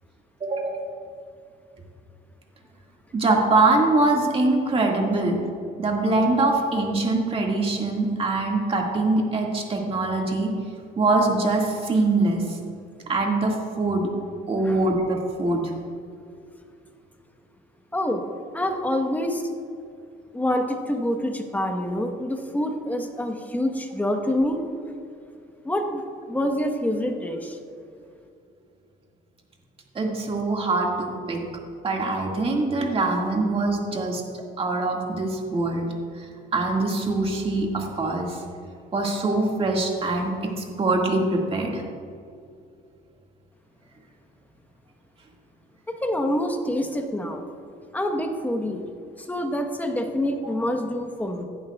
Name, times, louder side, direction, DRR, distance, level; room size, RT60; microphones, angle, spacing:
voice 1, 0.4-0.8 3.1-5.4 5.8-10.5 11.0-12.6 13.1-14.1 14.5-15.7 29.9-31.4 31.8-34.2 34.6-35.9 36.2-36.3 36.5-38.4 38.9-41.8, right 2 dB, 35° right, 0 dB, 2.0 m, -23 dB
voice 2, 17.9-18.2 18.5-19.5 20.3-24.6 25.6-27.6 45.9-47.4 47.9-48.8 49.2-51.4, left 1 dB, 10° left, 4 dB, 1.2 m, -26 dB
16.0 x 11.0 x 2.4 m, 2.4 s
cardioid pair, 110°, 17 cm